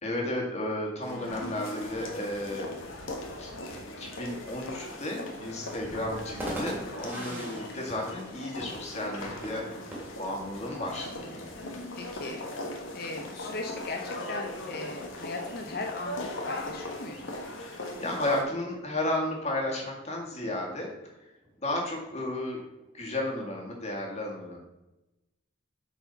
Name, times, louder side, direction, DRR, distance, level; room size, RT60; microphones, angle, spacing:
voice 1, 0.0-2.7 3.4-3.5 3.8-11.5 17.6-20.9 21.6-22.6 22.9-24.6, left 1 dB, 35° left, -1 dB, 2.0 m, -33 dB
sound 1, 1.0-18.4, left 1 dB, 90° left, 1.5 m, -39 dB
sound 2, 6.2-23.4, right 1 dB, 10° right, 2.3 m, -46 dB
voice 2, 7.1-7.7 11.9-12.5 12.7-17.3, left 2 dB, 50° left, 4 dB, 0.6 m, -38 dB
7.8 x 4.7 x 5.6 m, 0.98 s
head